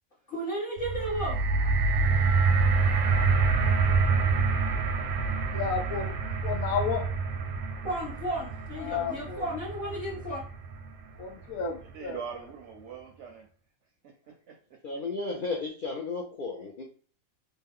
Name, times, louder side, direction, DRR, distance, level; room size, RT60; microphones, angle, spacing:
voice 1, 0.3-1.4 7.8-10.4, right 1 dB, 45° left, 1.1 m, -34 dB
sound 1, 0.8-11.0 11.8-11.9, right 4 dB, 90° right, 1.0 m, -27 dB
voice 2, 5.5-6.1 6.4-7.0 8.8-9.4 11.2-12.2, left 6 dB, 80° left, 1.1 m, -32 dB
voice 3, 11.9-13.5 14.0-14.8, right 6 dB, 65° right, 0.8 m, -43 dB
voice 4, 14.8-16.8, left 3 dB, 60° left, 0.5 m, -34 dB
3.1 x 2.1 x 3.5 m
omnidirectional pair, 1.5 m